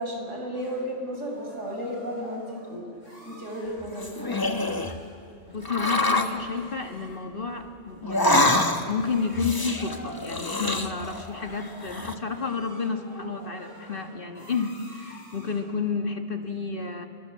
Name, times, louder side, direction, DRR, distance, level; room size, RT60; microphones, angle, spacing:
voice 1, 0.0-2.9 3.2-4.8, equal, 90° right, 2 dB, 5.7 m, -34 dB
sound 1, 0.5-15.7, equal, 85° left, 7.5 m, -46 dB
sound 2, 3.8-5.0 5.7-6.4 8.0-9.0 9.3-11.3 11.6-12.1, left 1 dB, 20° left, 1.3 m, -25 dB
voice 2, 5.5-8.6 8.9-17.1, left 5 dB, 45° left, 4 dB, 1.9 m, -31 dB
30.0 x 23.5 x 7.6 m, 2.3 s
omnidirectional pair, 1.3 m